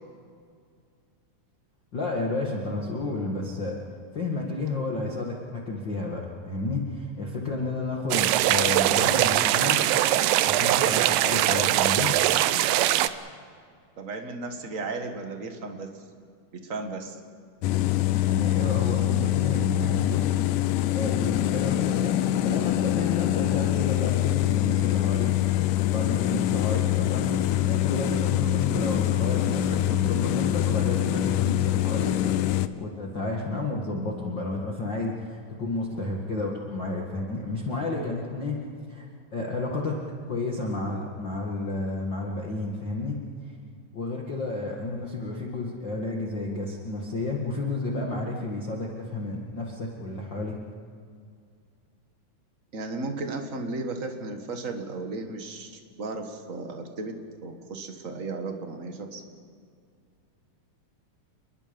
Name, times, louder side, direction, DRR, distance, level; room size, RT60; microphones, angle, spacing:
voice 1, 1.9-3.8 4.1-9.8 10.4-12.1 18.2-20.4 20.9-25.3 25.9-27.4 27.6-32.4 32.7-39.1 39.3-40.0 40.3-43.5 43.9-50.6, left 2 dB, 40° left, -1 dB, 2.0 m, -31 dB
sound 1, 8.1-13.1, right 14 dB, 80° right, 2.4 m, -22 dB
voice 2, 14.0-15.9 16.5-17.2 52.7-57.2 57.4-59.2, right 3 dB, 40° right, 5 dB, 1.2 m, -35 dB
sound 2, 17.6-32.7, left 13 dB, 75° left, 2.0 m, -24 dB
29.0 x 21.5 x 5.3 m, 2.2 s
omnidirectional pair, 4.0 m